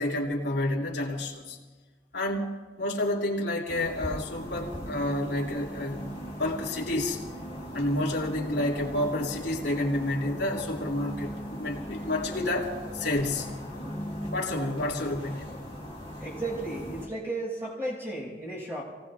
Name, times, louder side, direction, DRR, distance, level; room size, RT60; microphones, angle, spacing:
voice 1, 0.0-1.6 2.1-2.5 2.8-7.2 7.7-13.5 14.3-15.5, left 1 dB, 80° left, -2 dB, 2.7 m, -29 dB
sound 1, 3.7-17.1, equal, 35° right, 3.0 m, -39 dB
voice 2, 16.2-18.8, right 2 dB, 15° right, -5 dB, 6.0 m, -34 dB
30.0 x 18.5 x 2.4 m, 1.4 s
head